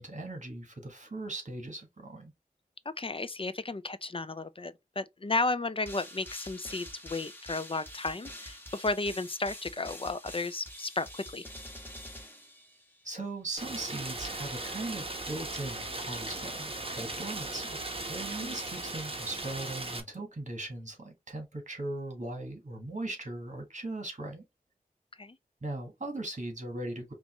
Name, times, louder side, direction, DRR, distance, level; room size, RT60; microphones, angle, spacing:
voice 1, 0.0-2.3 13.0-17.8 18.1-24.4 25.6-27.1, right 2 dB, 55° right, 1.5 m, -39 dB
voice 2, 2.9-11.5 18.4-18.6 25.2-25.4, left 3 dB, 35° left, 0.4 m, -33 dB
sound 1, 5.9-13.1, left 1 dB, 15° left, 1.3 m, -46 dB
Rain, 13.6-20.0, right 2 dB, 35° right, 1.1 m, -38 dB
5.3 x 2.5 x 3.0 m
wide cardioid pair, 50°, 15 cm